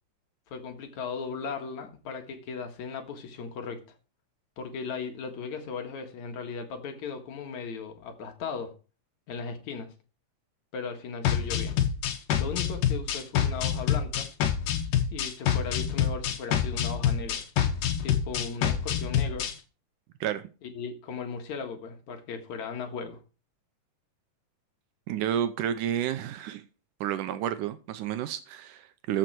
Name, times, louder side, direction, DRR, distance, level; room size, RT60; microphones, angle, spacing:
voice 1, 0.5-3.9 4.6-8.8 9.3-9.9 10.7-11.8 12.4-14.3 15.1-17.4 18.0-19.5 20.6-23.2, left 5 dB, 65° left, 2.8 m, -37 dB
sound 1, 11.2-19.5, left 9 dB, 80° left, 2.8 m, -27 dB
voice 2, 25.1-26.6 27.0-29.2, right 10 dB, 80° right, 2.2 m, -30 dB
14.0 x 6.5 x 4.5 m
omnidirectional pair, 3.7 m